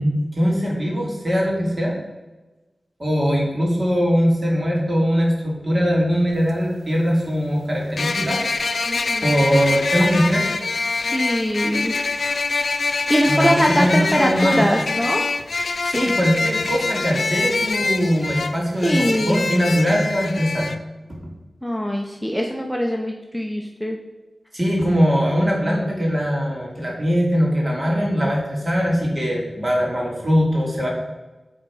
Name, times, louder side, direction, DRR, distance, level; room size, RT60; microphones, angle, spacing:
voice 1, 0.0-1.9 3.0-8.4 9.2-10.5 13.3-14.6 15.9-20.7 21.1-21.2 24.5-30.9, equal, 40° right, -3 dB, 2.5 m, -21 dB
sound 1, 6.3-6.4 8.0-20.8, left 3 dB, 70° left, 0.5 m, -25 dB
voice 2, 8.8-9.3 10.9-11.9 13.1-15.2 15.8-16.2 18.8-19.4 21.6-24.0, equal, ahead, 1 dB, 0.7 m, -22 dB
8.9 x 4.0 x 4.8 m, 1.1 s
wide cardioid pair, 80°, 0 cm